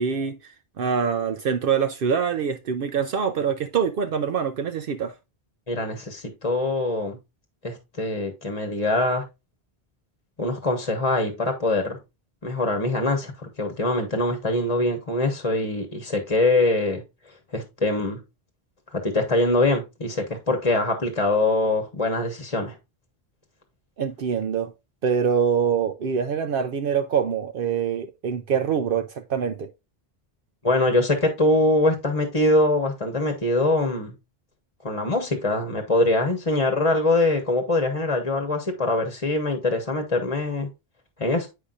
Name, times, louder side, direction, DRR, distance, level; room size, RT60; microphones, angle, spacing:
voice 1, 0.0-5.1 24.0-24.7 25.0-29.7, right 7 dB, 65° right, 0.7 m, -25 dB
voice 2, 5.7-7.2 7.6-9.2 10.4-12.0 12.4-17.0 17.5-18.2 18.9-22.8 30.6-34.1 34.8-40.7 41.2-41.5, left 2 dB, 35° left, 1.1 m, -23 dB
8.3 x 5.7 x 2.4 m
omnidirectional pair, 1.0 m